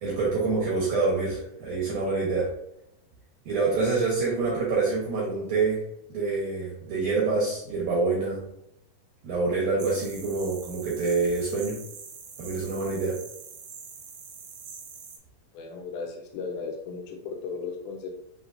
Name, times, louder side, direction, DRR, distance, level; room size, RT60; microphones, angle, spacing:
voice 1, 0.0-2.5 3.5-5.8 6.1-8.4 9.2-11.8 12.4-13.2, right 3 dB, 65° right, -4 dB, 2.0 m, -26 dB
sound 1, 9.8-15.2, right 6 dB, 85° right, 2.0 m, -44 dB
voice 2, 15.5-18.1, left 5 dB, 85° left, 0 dB, 3.1 m, -36 dB
6.8 x 3.0 x 2.6 m, 0.78 s
omnidirectional pair, 5.1 m